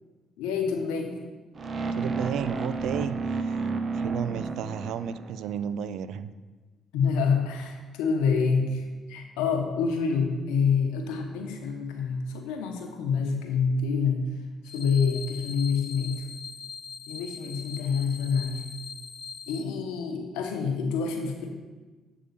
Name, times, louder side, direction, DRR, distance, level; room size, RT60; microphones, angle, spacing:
voice 1, 0.4-1.3 6.9-14.3 14.7-16.2 17.1-18.7 19.5-21.5, left 5 dB, 90° left, 3 dB, 0.9 m, -27 dB
sound 1, 1.6-5.7, right 4 dB, 45° right, 0.7 m, -31 dB
voice 2, 1.9-3.7 3.9-6.3, right 8 dB, 75° right, 14 dB, 0.3 m, -33 dB
sound 2, 14.6-19.6, left 5 dB, 40° left, 0.7 m, -41 dB
8.1 x 3.7 x 6.7 m, 1.3 s
supercardioid pair, 65°, 0 cm